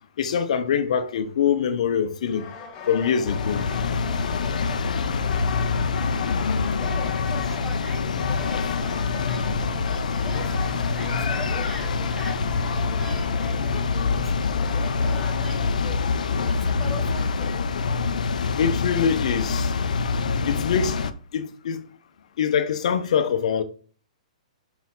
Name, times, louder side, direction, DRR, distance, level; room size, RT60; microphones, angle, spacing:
voice 1, 0.2-2.5 2.9-3.6 18.6-19.7 20.4-21.0 21.3-21.8 22.4-23.6, left 7 dB, 65° left, 1.0 m, -24 dB
sound 1, 2.3-15.4, left 6 dB, 25° left, 1.3 m, -37 dB
sound 2, 3.2-21.1, left 4 dB, 85° left, 0.6 m, -25 dB
voice 2, 6.8-12.4 12.7-17.6, equal, ahead, 1.5 m, -42 dB
sound 3, 9.3-10.1 10.4-13.2 13.5-17.7 18.0-19.1 19.5-20.7, right 3 dB, 45° right, 1.7 m, -44 dB
5.8 x 4.2 x 4.1 m
hypercardioid pair, 150°, 4 cm